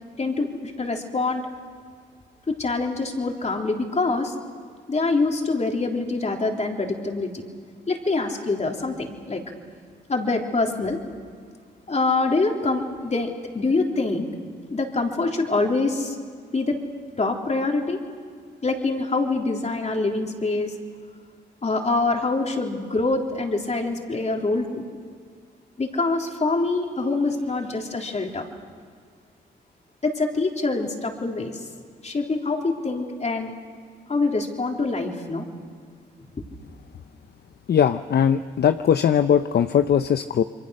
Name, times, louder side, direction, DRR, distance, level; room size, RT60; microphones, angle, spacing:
voice 1, 0.2-1.4 2.5-4.3 4.9-7.4 7.9-9.4 10.1-11.0 11.9-14.3 14.7-16.2 16.5-16.8 17.2-18.0 18.6-20.7 21.6-24.8 25.8-28.5 30.0-31.6 32.0-33.5 34.1-35.4, left 3 dB, 40° left, 2 dB, 3.6 m, -25 dB
voice 2, 37.7-40.4, left 8 dB, 60° left, 10 dB, 0.7 m, -20 dB
28.0 x 23.0 x 6.5 m, 2.1 s
cardioid pair, 60°, 19 cm